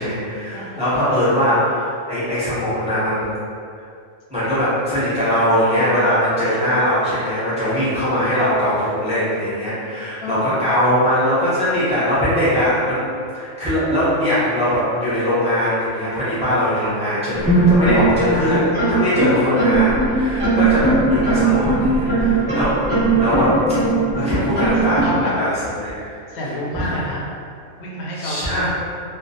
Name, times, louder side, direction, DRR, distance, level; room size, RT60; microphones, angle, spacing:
voice 1, 0.0-3.3 4.3-13.1 13.3-23.5 24.1-25.0 25.4-26.2 26.7-27.0 28.2-28.7, equal, 10° right, -12 dB, 0.3 m, -21 dB
voice 2, 0.5-1.1 1.4-1.5 6.7-6.8 10.2-10.7 16.9-17.0 19.2-19.7 24.3-25.3 26.3-27.3 27.8-28.7, left 1 dB, 65° left, -4 dB, 0.8 m, -29 dB
sound 1, 17.3-25.1, right 3 dB, 10° left, 0.9 m, -19 dB
2.2 x 2.1 x 2.7 m, 2.3 s
omnidirectional pair, 1.4 m